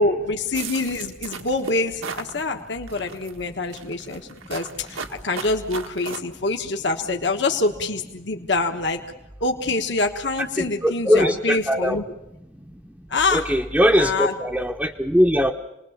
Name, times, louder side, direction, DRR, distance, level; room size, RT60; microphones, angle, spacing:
voice 1, 0.0-4.2 4.5-9.0 9.4-12.0 13.1-13.5 14.0-14.3, left 3 dB, 55° left, 3 dB, 1.3 m, -25 dB
sound 1, 0.5-2.3 2.9-3.3 3.7-6.2, right 5 dB, 90° right, 1.9 m, -35 dB
voice 2, 10.4-12.0 13.3-15.5, equal, 5° right, 1 dB, 0.8 m, -20 dB
29.0 x 20.5 x 7.3 m, 0.94 s
head